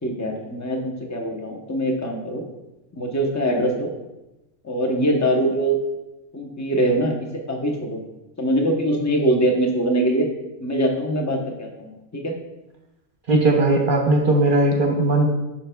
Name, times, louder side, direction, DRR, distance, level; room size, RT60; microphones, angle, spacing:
voice 1, 0.0-2.4 2.9-3.9 4.6-5.8 6.3-8.0 8.4-10.3 10.6-12.4, right 1 dB, 15° left, 1 dB, 0.7 m, -23 dB
voice 2, 13.3-15.3, right 2 dB, 55° right, 2 dB, 0.9 m, -18 dB
9.4 x 5.8 x 2.2 m, 0.99 s
omnidirectional pair, 1.2 m